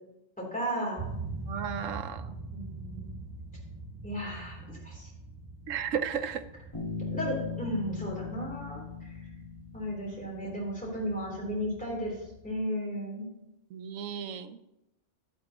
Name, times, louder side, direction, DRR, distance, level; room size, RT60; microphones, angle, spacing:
voice 1, 0.4-1.0 2.5-3.1 4.0-5.1 7.1-9.2 9.7-12.2 12.4-13.3, equal, 5° left, -4 dB, 3.3 m, -34 dB
sound 1, 1.0-12.5, right 3 dB, 30° right, 0.4 m, -44 dB
voice 2, 1.5-2.4 5.7-6.4 13.7-14.6, right 7 dB, 85° right, 11 dB, 1.0 m, -34 dB
Bass guitar, 6.7-10.4, left 5 dB, 25° left, 1.9 m, -39 dB
11.0 x 10.5 x 3.0 m, 0.88 s
omnidirectional pair, 1.3 m